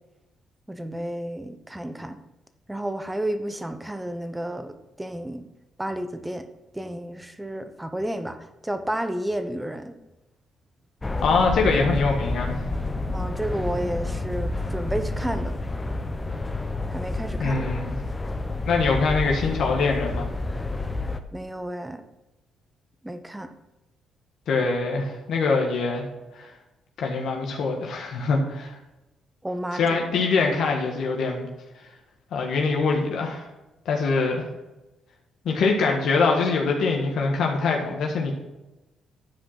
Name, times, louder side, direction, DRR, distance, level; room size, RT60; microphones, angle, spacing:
voice 1, 0.7-2.2 2.7-4.7 5.0-5.4 5.8-6.4 6.7-8.4 8.6-10.0 13.1-15.5 16.9-17.6 18.3-18.7 21.3-22.0 23.0-23.5 29.4-30.0, right 1 dB, 10° right, 9 dB, 1.0 m, -31 dB
ambience Vienna underground station train leave people walk, 11.0-21.2, left 2 dB, 15° left, 0.9 m, -29 dB
voice 2, 11.2-12.6 17.4-17.9 18.7-20.3 24.5-26.1 26.3-26.5 27.0-28.8 29.7-31.5 32.3-33.5 33.8-34.4 35.4-38.3, left 4 dB, 70° left, 1 dB, 1.6 m, -23 dB
11.5 x 5.0 x 5.8 m, 1.0 s
cardioid pair, 90°, 0 cm